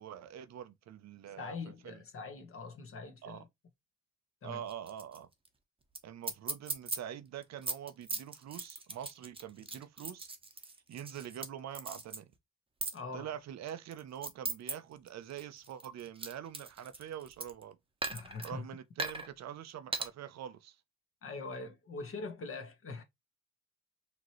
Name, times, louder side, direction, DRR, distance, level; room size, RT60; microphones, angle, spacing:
voice 1, 0.0-2.0 3.2-3.4 4.4-5.3 6.0-10.3 10.9-12.3 13.1-17.8 18.4-20.8, right 10 dB, 60° right, 0.7 m, -45 dB
voice 2, 1.4-3.5 4.4-4.6 12.9-13.3 18.1-18.7 21.2-23.0, left 4 dB, 45° left, 1.4 m, -43 dB
sound 1, 4.7-5.2 5.4-5.5 5.9-6.0 6.2-7.0 7.4-11.5 11.7-12.2 12.8-13.0 13.7-14.7 15.1-17.6 18.0-18.5 19.0-19.3 19.9-20.1, right 3 dB, 20° right, 0.9 m, -38 dB
5.0 x 3.0 x 3.0 m
cardioid pair, 90°, 30 cm